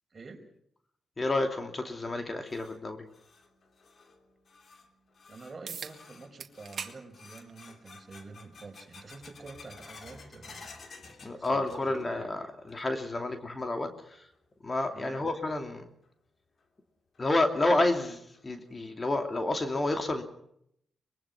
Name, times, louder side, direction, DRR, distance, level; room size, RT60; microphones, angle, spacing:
voice 1, 0.1-0.4 5.3-12.3 14.9-15.2, right 3 dB, 40° right, 4 dB, 5.0 m, -48 dB
voice 2, 1.2-3.1 11.2-14.3 14.6-15.9 17.2-20.2, left 2 dB, 30° left, 6 dB, 2.8 m, -30 dB
sound 1, 2.4-12.2 12.5-13.1 13.5-13.6 14.3-14.4 16.0-16.1 16.6-16.7 17.1-17.2 17.7-17.8 18.3-18.7, left 4 dB, 55° left, 3.2 m, -53 dB
sound 2, 5.7-6.0 6.4-7.0 7.4-7.5 8.6-8.7 13.6-13.7, right 6 dB, 60° right, 1.9 m, -40 dB
24.0 x 21.5 x 6.0 m, 0.71 s
cardioid pair, 80°, 0 cm